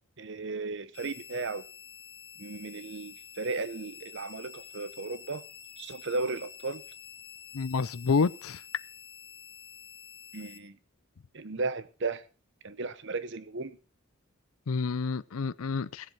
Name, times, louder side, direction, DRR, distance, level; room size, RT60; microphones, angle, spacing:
voice 1, 0.2-1.6 2.4-5.4 5.8-6.8 10.3-10.8 11.3-12.2 12.6-13.8, right 3 dB, 55° right, 0.9 m, -35 dB
sound 1, 0.9-10.6, left 8 dB, 25° left, 1.8 m, -49 dB
voice 2, 7.5-8.6 14.7-16.1, left 4 dB, 80° left, 0.5 m, -29 dB
17.0 x 7.6 x 5.6 m
head